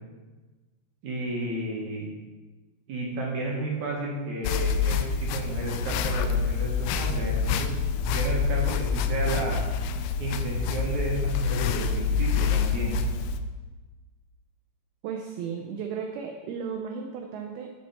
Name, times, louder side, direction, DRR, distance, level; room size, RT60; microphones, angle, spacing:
voice 1, 1.0-2.1 2.9-7.7 8.1-9.6 10.2-13.0, right 2 dB, 60° right, -3 dB, 2.1 m, -32 dB
sound 1, 4.4-13.4, left 5 dB, 85° left, 2.7 m, -27 dB
voice 2, 15.0-17.7, right 6 dB, 85° right, 3 dB, 2.1 m, -34 dB
11.5 x 5.8 x 4.2 m, 1.3 s
omnidirectional pair, 5.1 m